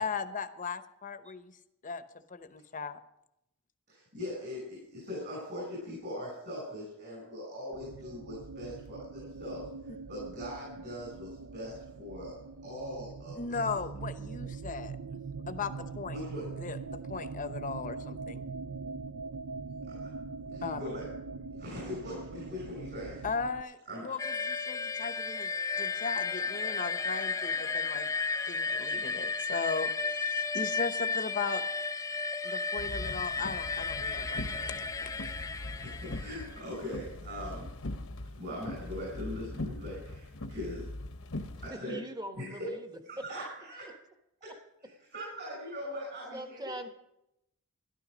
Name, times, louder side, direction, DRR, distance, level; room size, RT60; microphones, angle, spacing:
voice 1, 0.0-1.6 1.8-2.0 2.3-3.0 13.4-15.0 15.5-16.2 16.6-18.5 20.6-20.9 23.2-25.5 25.8-28.1 28.5-31.6 32.4-35.1, left 5 dB, 35° left, 10 dB, 0.8 m, -37 dB
voice 2, 3.9-12.3 12.6-13.7 16.1-16.4 20.0-20.1 20.5-21.1 21.6-23.3 23.9-24.2 35.8-37.7 38.3-40.9 41.6-42.0 42.4-42.6 43.1-43.8 44.4-44.5 44.8-46.7, left 1 dB, 50° right, -4 dB, 6.2 m, -41 dB
sound 1, 7.7-23.6, right 4 dB, 70° right, 0.5 m, -42 dB
sound 2, 24.2-36.6, left 4 dB, 15° left, 0.4 m, -33 dB
sound 3, 32.8-41.7, left 1 dB, 65° left, 1.0 m, -41 dB
voice 3, 41.7-42.9 43.2-43.3 46.3-46.9, right 1 dB, 20° right, 7 dB, 1.2 m, -41 dB
13.0 x 12.0 x 5.1 m, 0.82 s
head